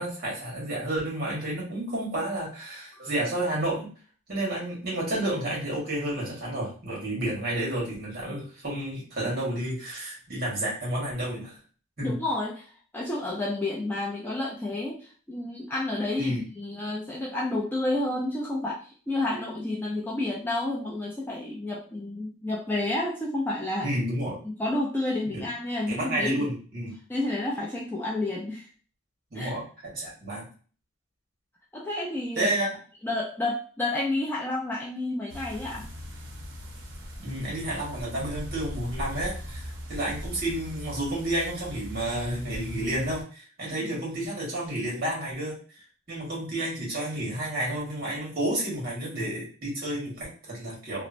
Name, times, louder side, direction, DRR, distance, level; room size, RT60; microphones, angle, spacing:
voice 1, 0.0-3.9 4.3-11.6 12.0-12.2 16.2-16.4 23.8-24.4 25.3-25.4 25.9-26.9 29.3-29.6 29.9-30.5 32.3-32.7 37.2-51.1, right 1 dB, 45° right, -4 dB, 1.4 m, -31 dB
voice 2, 12.0-12.7 12.9-23.9 24.4-26.5 27.1-28.7 29.3-29.5 31.7-32.5 33.0-35.9 43.7-44.0, left 2 dB, 10° left, -4 dB, 0.3 m, -30 dB
sound 1, 35.3-43.2, equal, 65° right, 0.7 m, -40 dB
3.0 x 2.0 x 2.5 m, 0.40 s
head